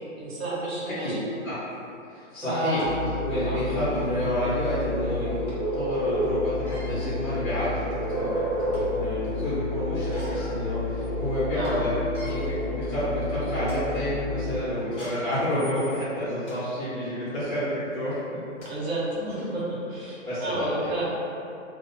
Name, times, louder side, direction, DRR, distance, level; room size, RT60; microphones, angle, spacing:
voice 1, 0.2-1.3 2.4-2.9 3.4-3.6 11.5-11.8 18.7-21.0, right 1 dB, 50° right, -8 dB, 0.7 m, -31 dB
voice 2, 0.9-1.6 2.1-2.8 3.2-12.0 12.2-18.2 19.1-19.3 20.3-20.9, equal, 85° left, -12 dB, 1.1 m, -29 dB
sound 1, 1.7-1.8 2.5-2.9 3.5-3.6 3.9-4.1 5.5-5.6 6.5-6.9 7.7-7.8 8.3-9.0 9.9-10.5 11.0-11.1 11.4-11.7 12.0-12.3 13.0-13.2 13.6-13.8 14.8-16.6 17.2-17.4 18.2-18.3 18.6-18.7 19.4-19.5, equal, 55° left, 0.9 m, -45 dB
sound 2, 2.8-14.6, left 1 dB, 25° left, 0.7 m, -30 dB
2.5 x 2.1 x 2.5 m, 2.6 s
hypercardioid pair, 180°, 40 cm